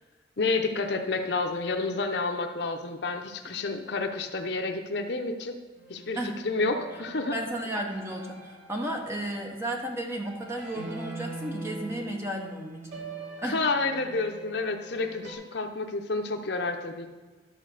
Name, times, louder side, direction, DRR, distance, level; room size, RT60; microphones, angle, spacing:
voice 1, 0.4-5.6 5.9-6.2 6.4-7.3 13.5-17.1, left 3 dB, 60° left, 5 dB, 0.8 m, -29 dB
sound 1, 5.8-15.3, right 3 dB, 75° right, 2.2 m, -43 dB
voice 2, 7.3-12.9 13.4-13.6, right 1 dB, 15° right, 1 dB, 1.0 m, -33 dB
12.0 x 4.2 x 6.5 m, 1.3 s
head